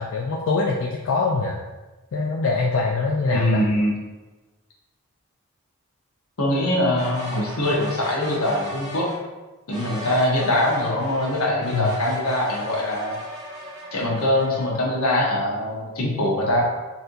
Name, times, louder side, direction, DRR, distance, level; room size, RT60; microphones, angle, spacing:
voice 1, 0.0-1.6 2.1-3.7 11.7-11.9, left 3 dB, 65° left, -1 dB, 0.3 m, -23 dB
voice 2, 3.3-3.9 6.4-9.1 9.7-13.2 13.9-16.6, left 1 dB, 85° left, -3 dB, 0.9 m, -23 dB
sound 1, 6.9-9.2 9.7-14.6, equal, 15° right, 0.7 m, -37 dB
4.2 x 2.5 x 2.6 m, 1.2 s
head